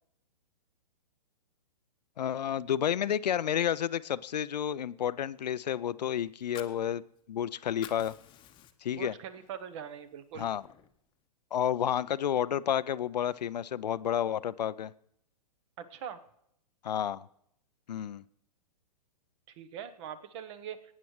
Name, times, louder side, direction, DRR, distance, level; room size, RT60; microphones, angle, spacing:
voice 1, 2.2-7.0 7.3-8.1 8.8-9.1 10.3-10.6 11.5-14.9 16.8-17.3 17.9-18.2, left 9 dB, 80° left, 18 dB, 0.4 m, -30 dB
Fire, 6.3-7.4 7.7-9.0 9.5-9.6 10.0-11.0, left 11 dB, 25° left, 0.8 m, -50 dB
voice 2, 8.9-10.5 15.8-16.2 19.5-20.8, right 8 dB, 45° right, 13 dB, 1.0 m, -42 dB
23.0 x 9.2 x 3.2 m, 0.75 s
hypercardioid pair, 120°, 21 cm